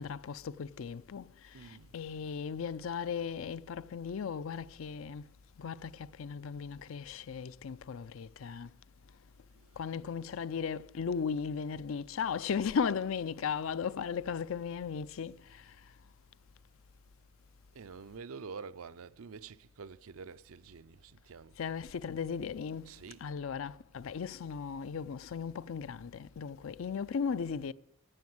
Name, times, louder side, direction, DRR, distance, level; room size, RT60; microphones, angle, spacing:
voice 1, 0.0-5.3 5.6-8.7 9.8-15.7 21.6-22.9 23.2-27.7, left 6 dB, 70° left, 0.4 m, -36 dB
voice 2, 1.5-1.9 9.5-9.9 17.7-21.6 22.8-23.3, right 5 dB, 85° right, 0.6 m, -48 dB
14.5 x 8.4 x 7.8 m
head